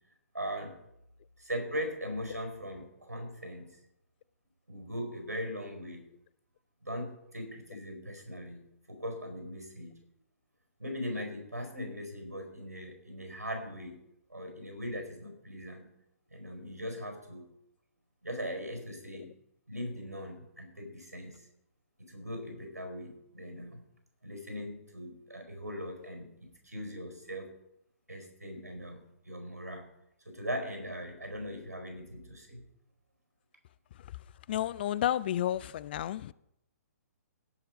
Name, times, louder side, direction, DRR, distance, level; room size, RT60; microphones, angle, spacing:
voice 1, 0.3-0.8 1.4-3.7 4.7-6.0 6.8-8.6 8.9-9.9 10.8-14.0 14.3-15.9 16.3-17.5 18.2-19.3 19.7-21.4 22.0-23.8 24.2-27.5 28.1-29.8 30.2-32.6, equal, 90° right, 4.6 m, -40 dB
voice 2, 34.5-36.3, left 12 dB, 40° left, 0.4 m, -31 dB
17.0 x 6.7 x 5.1 m
figure-of-eight pair, 125°, 8 cm